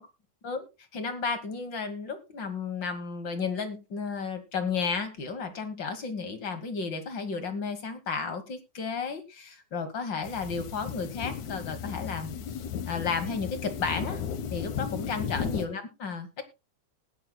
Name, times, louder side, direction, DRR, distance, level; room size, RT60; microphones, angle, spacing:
voice 1, 0.9-12.6 12.9-14.2 14.5-16.4, left 5 dB, 50° left, 8 dB, 1.5 m, -33 dB
sound 1, 10.2-15.7, left 7 dB, 70° left, 2.5 m, -35 dB
20.0 x 10.0 x 2.2 m, 0.26 s
omnidirectional pair, 3.6 m